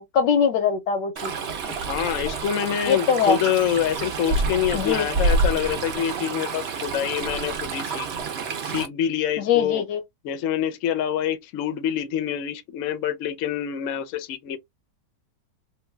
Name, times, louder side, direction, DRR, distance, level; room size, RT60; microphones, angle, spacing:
voice 1, 0.0-1.3 2.9-3.4 4.7-5.1 9.4-10.0, left 7 dB, 90° left, 1.4 m, -22 dB
Stream, 1.2-8.9, right 3 dB, 60° right, 0.6 m, -28 dB
voice 2, 1.7-8.1 8.6-9.8 10.2-14.6, left 10 dB, 65° left, 0.8 m, -26 dB
3.1 x 2.2 x 3.2 m
omnidirectional pair, 1.8 m